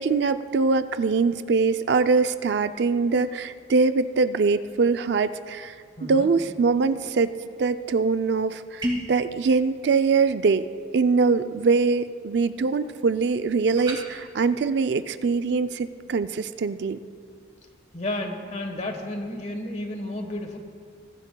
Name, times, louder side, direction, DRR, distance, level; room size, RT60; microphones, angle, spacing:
voice 1, 0.0-5.7 6.0-7.3 7.6-10.6 10.9-17.0, right 4 dB, 60° right, 11 dB, 0.4 m, -23 dB
voice 2, 6.0-6.3 17.9-20.6, left 1 dB, 35° left, 4 dB, 1.2 m, -32 dB
sound 1, 8.8-9.2 13.8-14.0, equal, 25° right, 2.1 m, -28 dB
21.5 x 14.5 x 2.3 m, 2.2 s
head